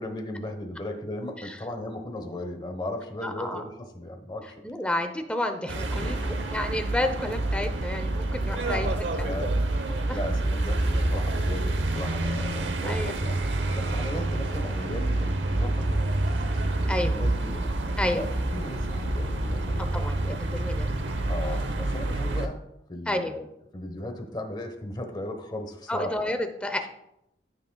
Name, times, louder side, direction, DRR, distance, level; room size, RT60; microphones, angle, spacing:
voice 1, 0.0-4.7 5.8-6.3 8.6-8.9 9.2-13.4 13.7-17.7 18.1-20.4 21.3-23.4 23.7-26.2, left 1 dB, 25° left, 5 dB, 1.1 m, -37 dB
voice 2, 3.2-3.6 4.6-9.3 9.9-10.2 12.8-13.2 16.9-17.2 18.0-18.2 19.9-20.9 23.1-23.3 25.9-26.9, left 1 dB, 5° left, 7 dB, 0.7 m, -30 dB
sound 1, 5.7-22.5, right 2 dB, 75° right, 0.9 m, -27 dB
14.5 x 6.1 x 2.3 m, 0.81 s
head